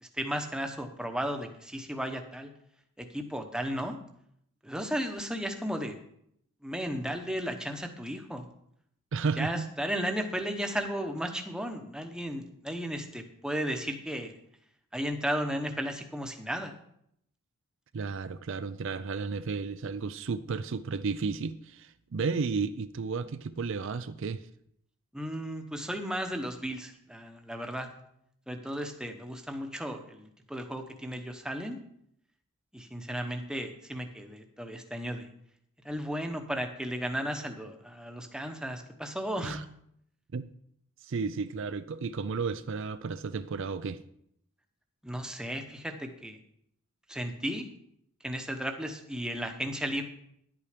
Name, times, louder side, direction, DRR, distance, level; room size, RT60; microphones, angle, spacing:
voice 1, 0.0-2.5 3.0-4.0 4.6-6.0 6.6-8.5 9.4-14.3 14.9-16.7 25.1-27.9 28.5-31.8 32.7-35.3 35.8-39.6 45.0-46.4 47.1-47.7 48.2-50.0, equal, 5° right, 5 dB, 0.9 m, -34 dB
voice 2, 9.1-9.7 17.9-24.5 39.4-39.6 40.3-40.5 41.0-44.0, right 4 dB, 60° right, 12 dB, 0.4 m, -33 dB
11.0 x 8.5 x 5.1 m, 0.72 s
head